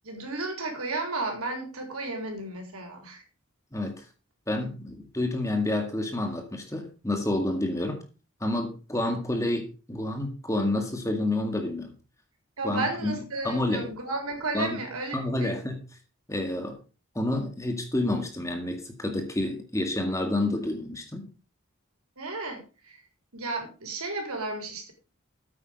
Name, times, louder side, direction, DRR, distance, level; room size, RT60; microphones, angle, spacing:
voice 1, 0.0-3.2 12.6-15.6 22.2-23.0 23.3-24.9, right 3 dB, 90° right, 3 dB, 4.2 m, -33 dB
voice 2, 3.7-4.0 4.5-8.0 8.4-11.9 12.6-13.1 13.4-13.9 14.5-14.8 15.1-15.8 16.3-16.8 17.2-21.3, left 1 dB, 15° left, 5 dB, 1.9 m, -29 dB
9.1 x 8.8 x 5.2 m, 0.34 s
head